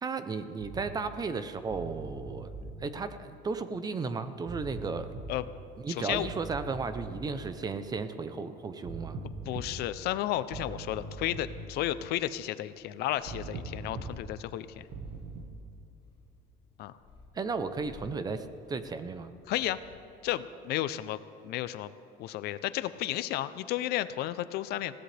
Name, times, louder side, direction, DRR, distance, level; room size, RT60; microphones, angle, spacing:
voice 1, 0.0-2.5 2.8-5.1 5.8-9.2 17.3-19.3, right 4 dB, 20° right, 11 dB, 0.6 m, -34 dB
sound 1, 0.6-1.1 1.7-3.0 4.5-5.4 6.1-7.4 8.9-10.1 10.5-11.8 13.3-14.5 14.9-15.5, right 3 dB, 60° right, 1.6 m, -41 dB
voice 2, 5.9-6.3 9.5-14.9 16.8-16.9 19.5-19.8 20.2-21.9 22.2-24.9, left 14 dB, 60° left, 14 dB, 0.6 m, -33 dB
Purr, 13.2-20.1, left 4 dB, 25° left, 2.6 m, -56 dB
20.5 x 16.5 x 3.4 m, 2.9 s
cardioid pair, 155°, 19 cm